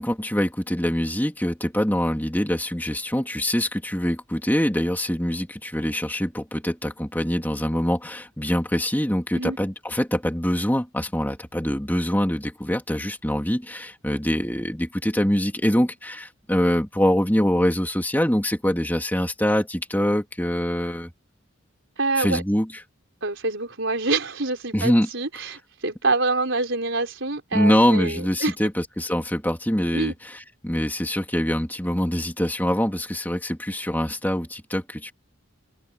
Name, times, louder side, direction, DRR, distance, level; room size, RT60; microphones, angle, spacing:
voice 1, 0.0-21.1 22.2-22.7 24.7-25.1 27.5-35.1, equal, 10° left, 2.8 m, -24 dB
voice 2, 22.0-22.4 23.2-28.5 29.9-30.1, right 3 dB, 60° right, 5.2 m, -26 dB
open air
head